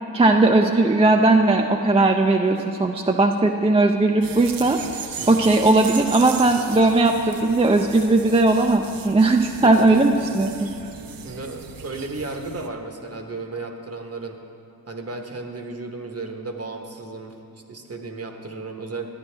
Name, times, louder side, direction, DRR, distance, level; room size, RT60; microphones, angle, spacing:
voice 1, 0.1-4.8 5.3-10.7, right 2 dB, 15° right, 4 dB, 0.4 m, -18 dB
sound 1, 4.2-12.7, right 7 dB, 70° right, 0.6 m, -37 dB
voice 2, 5.2-5.5 9.6-10.1 11.2-14.4 14.9-17.4 17.7-19.1, right 3 dB, 40° right, 4 dB, 1.0 m, -34 dB
11.5 x 9.6 x 3.3 m, 2.8 s
wide cardioid pair, 80°, 36 cm